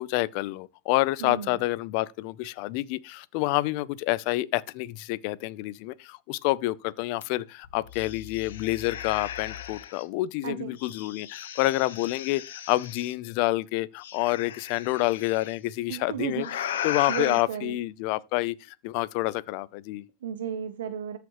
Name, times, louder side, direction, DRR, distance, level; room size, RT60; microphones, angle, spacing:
voice 1, 0.0-20.0, left 18 dB, 50° left, 0.5 m, -28 dB
voice 2, 1.2-1.6 10.4-10.8 15.9-16.5 17.1-17.8 20.2-21.2, right 8 dB, 85° right, 0.8 m, -33 dB
sound 1, 7.2-7.3 7.6-10.0 10.8-13.1 14.0-15.5 16.4-17.4, left 10 dB, 85° left, 1.1 m, -37 dB
13.5 x 5.0 x 3.1 m
supercardioid pair, 150°, 0 cm